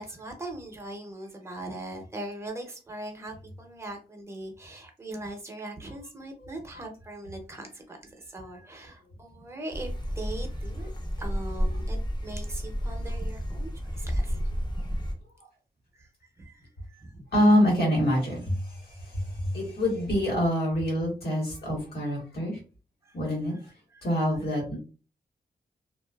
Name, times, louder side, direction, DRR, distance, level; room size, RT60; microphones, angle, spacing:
voice 1, 0.0-10.9 11.2-12.0 12.2-14.4 14.8-15.0 15.9-17.2 19.2-19.3 23.0-23.2 23.9-24.1, right 1 dB, 15° right, 0.6 m, -40 dB
sound 1, 9.7-15.1, equal, 30° left, 0.5 m, -31 dB
voice 2, 17.3-22.6 23.1-23.6 24.0-24.8, equal, 85° left, 1.3 m, -26 dB
2.5 x 2.3 x 2.3 m
wide cardioid pair, 150°, 16 cm